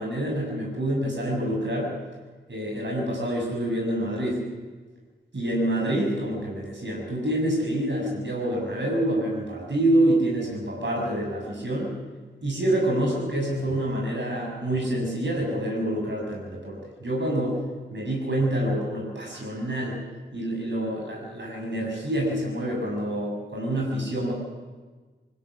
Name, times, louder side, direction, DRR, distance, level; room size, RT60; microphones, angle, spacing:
voice 1, 0.0-1.9 2.5-4.4 5.3-11.9 12.4-17.6 17.9-20.0 20.3-24.3, right 1 dB, 65° right, -2 dB, 7.0 m, -27 dB
27.0 x 16.0 x 6.2 m, 1.3 s
wide cardioid pair, 65°, 20 cm